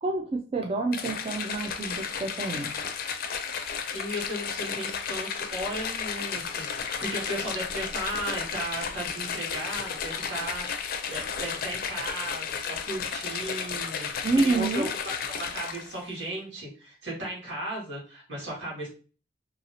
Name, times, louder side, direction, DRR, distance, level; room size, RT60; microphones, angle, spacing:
voice 1, 0.0-2.7 14.2-14.9, right 3 dB, 30° right, 3 dB, 0.3 m, -28 dB
sound 1, 0.9-16.0, left 6 dB, 55° left, 0.4 m, -33 dB
voice 2, 3.9-10.7 11.0-18.9, right 1 dB, 80° right, -4 dB, 1.7 m, -36 dB
2.8 x 2.7 x 2.7 m, 0.37 s
head